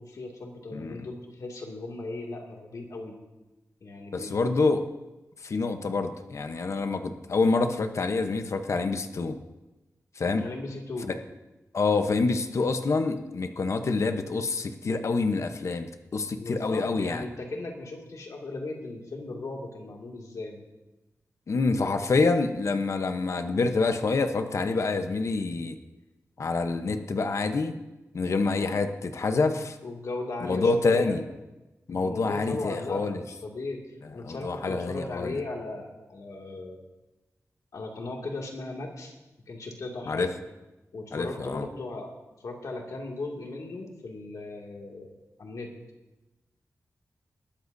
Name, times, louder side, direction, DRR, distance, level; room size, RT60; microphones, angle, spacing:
voice 1, 0.0-3.1 3.8-4.5 10.4-11.1 16.4-20.6 29.8-31.2 31.9-36.8 37.7-39.1 39.5-40.3 40.9-42.1 42.4-45.1 45.4-45.7, left 2 dB, 80° left, 0 dB, 2.3 m, -37 dB
voice 2, 4.1-4.8 5.4-9.4 10.2-10.5 11.1-11.2 11.7-17.2 21.5-25.8 26.4-27.8 28.1-29.8 30.4-31.2 31.9-33.2 34.3-35.4 40.1-40.3 41.1-41.7, left 3 dB, 60° left, 8 dB, 0.9 m, -27 dB
20.5 x 13.5 x 2.7 m, 1.0 s
wide cardioid pair, 135°, 6 cm